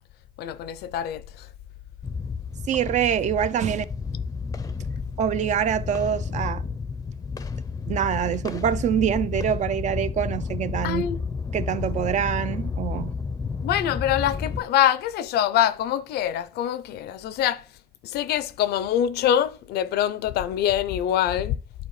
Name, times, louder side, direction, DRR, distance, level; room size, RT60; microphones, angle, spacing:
voice 1, 0.4-1.5 10.8-11.2 13.6-17.6 18.0-21.5, left 10 dB, 70° left, 0.5 m, -24 dB
sound 1, 2.0-14.6, left 5 dB, 20° left, 0.5 m, -31 dB
voice 2, 2.7-3.9 5.2-6.6 7.9-11.1 11.5-13.1, right 9 dB, 45° right, 0.4 m, -25 dB
10.5 x 4.4 x 3.1 m
cardioid pair, 110°, 17 cm